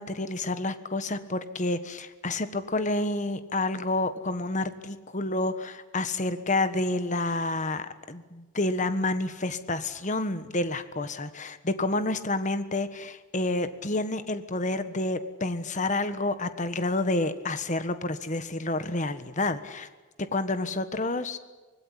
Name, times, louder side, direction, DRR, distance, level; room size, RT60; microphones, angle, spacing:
voice 1, 0.0-19.9 20.2-21.4, left 2 dB, 40° left, 11 dB, 1.4 m, -29 dB
25.5 x 19.0 x 9.9 m, 1.3 s
head